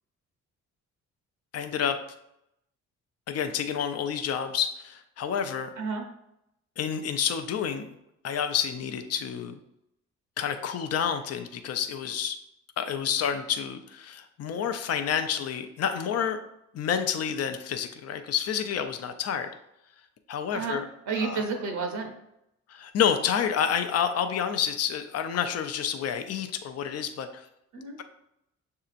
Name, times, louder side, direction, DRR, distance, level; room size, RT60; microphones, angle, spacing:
voice 1, 1.5-2.0 3.3-5.7 6.8-8.0 8.2-9.6 10.4-12.4 12.8-16.5 16.7-19.5 20.3-20.8 21.2-21.4 22.7-27.5, left 8 dB, 55° left, 8 dB, 0.5 m, -29 dB
voice 2, 5.8-6.1 20.5-22.1 27.7-28.0, right 5 dB, 70° right, 3 dB, 0.8 m, -31 dB
6.5 x 2.8 x 2.5 m, 0.81 s
cardioid pair, 90°, 30 cm